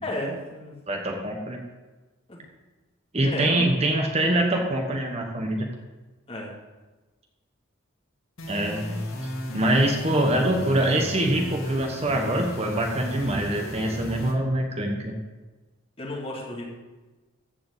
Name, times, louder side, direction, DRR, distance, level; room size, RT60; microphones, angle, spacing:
voice 1, 0.0-0.8 2.3-2.4 3.2-3.8 6.3-6.5 16.0-16.7, left 1 dB, 25° left, -3 dB, 2.7 m, -33 dB
voice 2, 0.9-1.6 3.1-5.7 8.5-9.0 9.5-15.1, right 1 dB, 30° right, 2 dB, 1.2 m, -24 dB
sound 1, 8.4-14.3, left 1 dB, 80° left, 2.6 m, -34 dB
14.0 x 5.0 x 8.0 m, 1.2 s
head